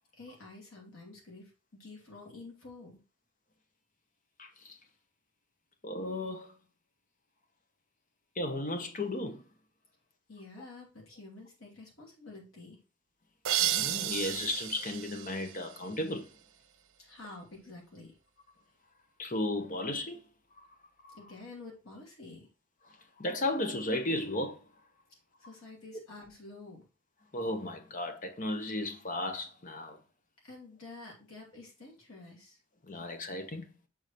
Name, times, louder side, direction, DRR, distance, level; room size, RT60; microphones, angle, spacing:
voice 1, 0.2-3.0 10.3-12.8 17.0-18.1 21.1-22.5 25.4-26.9 30.4-32.6, left 3 dB, 85° left, 2.8 m, -49 dB
voice 2, 4.4-4.8 5.8-6.5 8.4-9.4 13.6-16.3 19.2-20.2 21.0-21.2 23.2-24.6 27.3-30.0 32.9-33.7, left 1 dB, 40° left, 0.9 m, -34 dB
sound 1, 13.4-16.2, right 12 dB, 90° right, 0.7 m, -33 dB
6.7 x 4.0 x 4.3 m
head